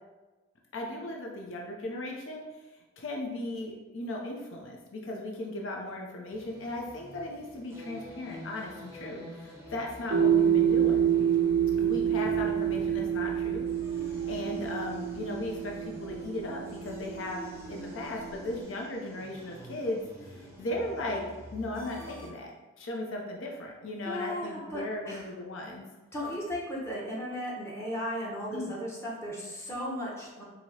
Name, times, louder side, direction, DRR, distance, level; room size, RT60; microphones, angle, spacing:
voice 1, 0.7-2.4 3.0-11.1 11.8-13.6 14.0-21.2 21.5-25.8 28.5-28.7, left 1 dB, 70° left, 0 dB, 0.5 m, -37 dB
sound 1, 6.3-22.3, equal, 15° right, 0.6 m, -47 dB
sound 2, 10.1-18.6, right 9 dB, 55° right, 0.3 m, -28 dB
voice 2, 24.0-25.3 26.1-30.4, equal, 15° left, -5 dB, 0.9 m, -36 dB
4.6 x 2.7 x 2.7 m, 1.2 s
head